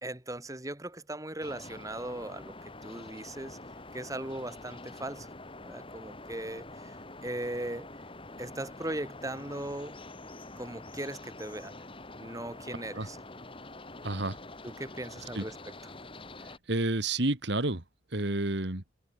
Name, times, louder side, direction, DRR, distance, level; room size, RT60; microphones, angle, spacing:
voice 1, 0.0-2.6 2.8-3.6 3.9-5.3 5.6-7.0 7.2-7.9 8.4-10.0 10.6-11.7 12.2-13.2 14.6-15.7, right 1 dB, 15° right, 2.2 m, -38 dB
sound 1, 1.4-16.6, left 2 dB, 25° left, 4.3 m, -46 dB
voice 2, 14.0-14.4 15.3-15.4 16.7-17.8 18.1-18.8, right 2 dB, 60° right, 2.0 m, -29 dB
head